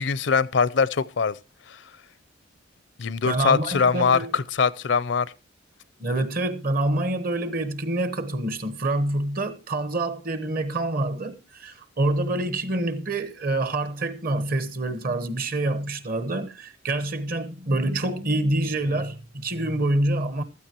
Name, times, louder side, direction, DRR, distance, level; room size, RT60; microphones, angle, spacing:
voice 1, 0.0-1.4 1.7-1.8 3.0-5.3, left 5 dB, 65° left, 0.5 m, -22 dB
voice 2, 3.2-4.3 6.0-20.4, right 2 dB, 50° right, 1.1 m, -26 dB
15.5 x 13.0 x 3.0 m
head